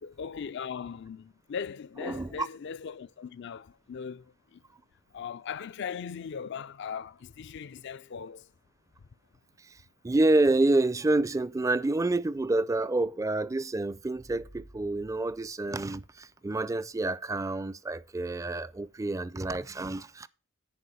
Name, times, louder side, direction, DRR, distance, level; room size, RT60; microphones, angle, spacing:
voice 1, 0.0-4.3 4.5-4.6 5.1-8.5, left 6 dB, 60° left, 0.4 m, -39 dB
voice 2, 2.0-2.5 10.0-20.3, right 2 dB, 15° right, 0.4 m, -28 dB
10.0 x 4.6 x 6.8 m
head